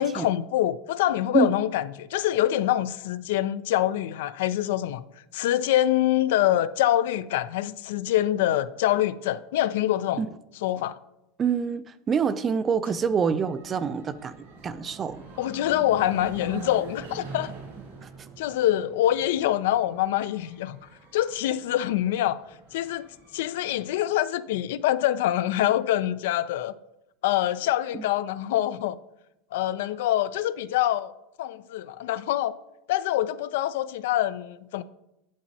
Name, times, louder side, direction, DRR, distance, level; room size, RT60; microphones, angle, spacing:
voice 1, 0.0-5.0 5.3-10.2 10.6-11.0 15.4-17.5 18.4-20.8 21.1-22.4 22.7-23.1 23.3-26.7 27.2-29.0 29.5-31.1 31.4-32.5 32.9-34.8, left 13 dB, 80° left, 0.3 m, -25 dB
voice 2, 11.4-14.3 14.6-15.2 27.9-28.0, right 6 dB, 25° right, 0.3 m, -26 dB
sound 1, 13.0-24.0, right 4 dB, 85° right, 2.8 m, -45 dB
8.6 x 7.2 x 2.7 m
supercardioid pair, 145°, 0 cm